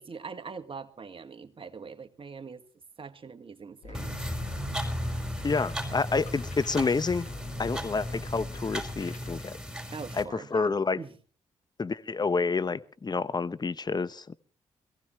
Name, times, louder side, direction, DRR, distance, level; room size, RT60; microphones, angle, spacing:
voice 1, 0.0-2.6 3.0-4.2 9.9-10.7 11.0-11.1, right 5 dB, 45° right, 1.8 m, -42 dB
sound 1, 3.8-9.4, left 4 dB, 65° left, 1.9 m, -45 dB
sound 2, 3.9-10.2, equal, 5° right, 5.0 m, -35 dB
voice 2, 5.4-7.3 7.6-9.6 10.2-11.0 11.8-14.3, left 4 dB, 35° left, 0.9 m, -29 dB
22.0 x 15.5 x 3.2 m
supercardioid pair, 45°, 13 cm